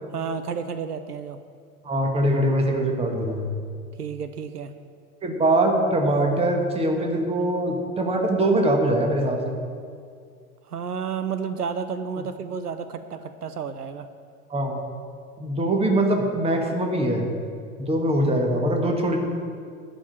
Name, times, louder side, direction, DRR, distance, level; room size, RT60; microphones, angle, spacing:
voice 1, 0.1-1.4 4.0-4.7 10.7-14.1, right 6 dB, 80° right, 11 dB, 0.7 m, -31 dB
voice 2, 1.8-3.5 5.2-9.6 14.5-14.8 15.4-17.3 17.8-19.2, right 1 dB, 15° right, 3 dB, 1.5 m, -22 dB
12.5 x 5.3 x 8.9 m, 2.2 s
figure-of-eight pair, 95°, 45 cm